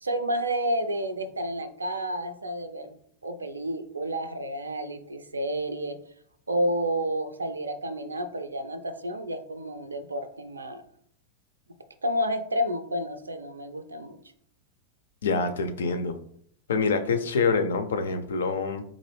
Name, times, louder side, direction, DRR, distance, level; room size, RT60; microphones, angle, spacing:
voice 1, 0.0-3.0 3.2-6.0 6.5-10.8 12.0-14.2 15.4-15.5, equal, 80° right, 10 dB, 0.4 m, -30 dB
voice 2, 15.2-16.2 16.7-18.8, left 4 dB, 65° left, 8 dB, 0.4 m, -26 dB
3.8 x 2.5 x 3.1 m, 0.64 s
figure-of-eight pair, 90°, 0 cm